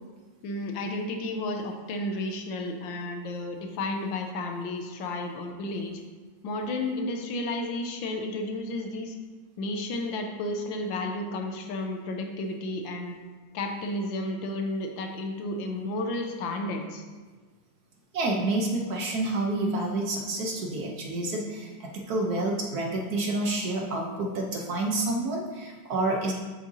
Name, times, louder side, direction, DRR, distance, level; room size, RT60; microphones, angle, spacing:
voice 1, 0.4-5.9 6.4-9.1 9.6-13.1 13.5-17.0, left 2 dB, 75° left, 3 dB, 1.4 m, -32 dB
voice 2, 18.1-26.3, right 2 dB, 60° right, 0 dB, 1.1 m, -29 dB
7.5 x 6.5 x 2.7 m, 1.4 s
omnidirectional pair, 2.2 m